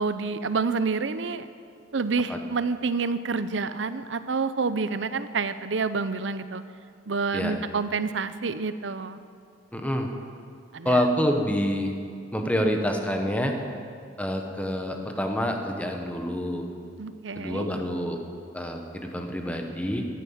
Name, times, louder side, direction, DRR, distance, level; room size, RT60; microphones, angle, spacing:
voice 1, 0.0-1.5 1.9-6.6 7.1-9.2 10.7-11.0 17.0-17.7, right 4 dB, 75° right, 12 dB, 0.7 m, -28 dB
voice 2, 9.7-10.1 10.8-11.9 12.3-13.6 14.2-16.6 17.4-18.2 18.5-20.0, equal, 10° left, 3 dB, 1.3 m, -27 dB
15.5 x 10.5 x 7.3 m, 2.3 s
head